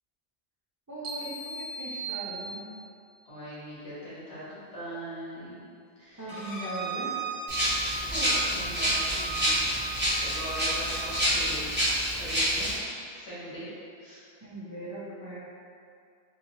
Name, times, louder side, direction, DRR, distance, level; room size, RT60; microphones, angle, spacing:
voice 1, 0.9-2.6 6.2-7.1 14.4-15.4, right 1 dB, 30° right, -9 dB, 0.3 m, -39 dB
sound 1, 1.0-3.0, right 3 dB, 85° right, 0.9 m, -38 dB
voice 2, 3.2-5.7 6.0-6.4 8.0-9.7 10.0-11.7 12.2-13.7 14.0-14.2, equal, 75° left, -10 dB, 1.4 m, -41 dB
Bowed string instrument, 6.3-11.2, right 4 dB, 40° left, 0.9 m, -37 dB
Rattle (instrument), 7.5-12.7, equal, 10° right, 0.8 m, -28 dB
2.9 x 2.7 x 2.8 m, 2.3 s
omnidirectional pair, 1.1 m